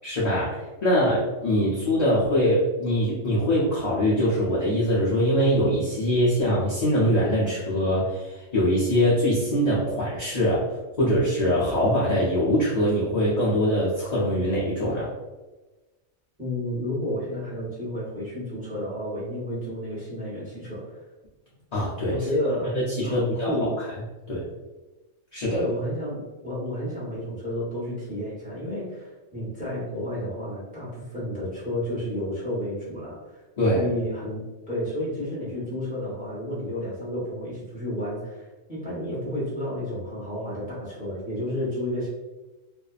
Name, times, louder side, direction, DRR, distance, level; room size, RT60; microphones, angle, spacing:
voice 1, 0.0-10.7 11.0-15.1 21.7-22.2 22.7-23.5 24.3-24.4 25.3-25.6 33.6-33.9, equal, 50° left, -7 dB, 0.5 m, -23 dB
voice 2, 16.4-21.0 22.1-23.8 25.5-33.4 33.7-34.4 34.7-42.1, left 1 dB, 5° right, -8 dB, 0.9 m, -31 dB
2.6 x 2.2 x 2.3 m, 1.1 s
omnidirectional pair, 1.3 m